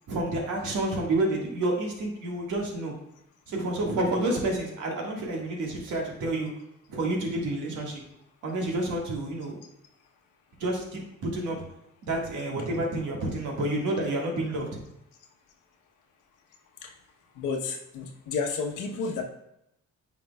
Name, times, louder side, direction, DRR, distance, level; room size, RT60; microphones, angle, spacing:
voice 1, 0.1-2.9 3.5-6.5 6.9-8.0 8.4-9.6 10.6-11.6 12.0-14.7, right 1 dB, 80° right, -1 dB, 1.8 m, -29 dB
voice 2, 17.4-19.2, left 4 dB, 85° left, 3 dB, 1.0 m, -31 dB
9.2 x 5.1 x 2.3 m, 0.80 s
cardioid pair, 90°, 30 cm